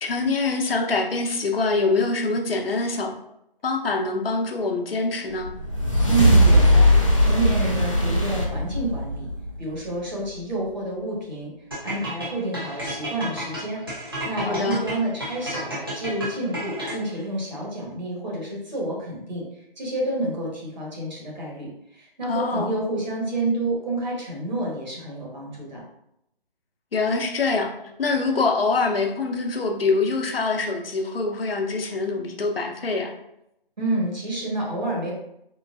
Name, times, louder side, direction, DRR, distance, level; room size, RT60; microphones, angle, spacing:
voice 1, 0.0-3.1 3.6-5.5 14.4-14.8 22.3-22.7 26.9-27.7 28.0-33.1, left 3 dB, 80° left, 3 dB, 0.7 m, -24 dB
sound 1, 5.4-10.0, equal, 35° left, 0.5 m, -19 dB
voice 2, 6.1-9.3 9.6-11.5 11.8-25.8 33.8-35.1, right 2 dB, 50° right, -4 dB, 1.3 m, -29 dB
sound 2, 11.7-17.2, right 1 dB, 25° right, 0.6 m, -32 dB
3.8 x 2.3 x 2.5 m, 0.80 s
hypercardioid pair, 175°, 29 cm